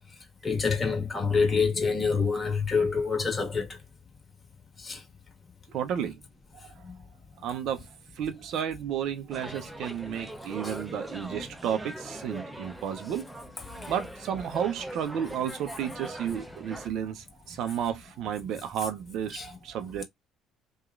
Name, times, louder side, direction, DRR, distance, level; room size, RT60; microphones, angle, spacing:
voice 1, 0.4-3.8 4.8-5.0 6.9-7.0 10.6-10.7 13.8-13.9 19.3-19.5, left 5 dB, 30° left, 1.5 m, -27 dB
voice 2, 5.7-6.2 7.4-7.8 8.2-13.3 13.9-20.0, right 9 dB, 70° right, 0.6 m, -32 dB
sound 1, 9.3-16.9, right 1 dB, 10° right, 0.7 m, -41 dB
2.9 x 2.3 x 2.4 m
hypercardioid pair, 65°, 0 cm